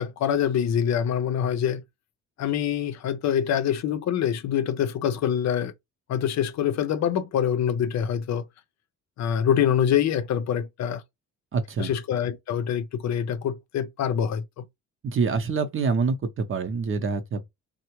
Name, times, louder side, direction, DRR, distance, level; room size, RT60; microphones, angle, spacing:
voice 1, 0.0-1.8 2.4-5.7 6.1-8.5 9.2-11.0 11.8-14.6, left 9 dB, 65° left, 0.6 m, -25 dB
voice 2, 11.5-11.9 15.0-17.5, right 4 dB, 45° right, 0.7 m, -26 dB
3.3 x 2.1 x 3.0 m
cardioid pair, 90°, 30 cm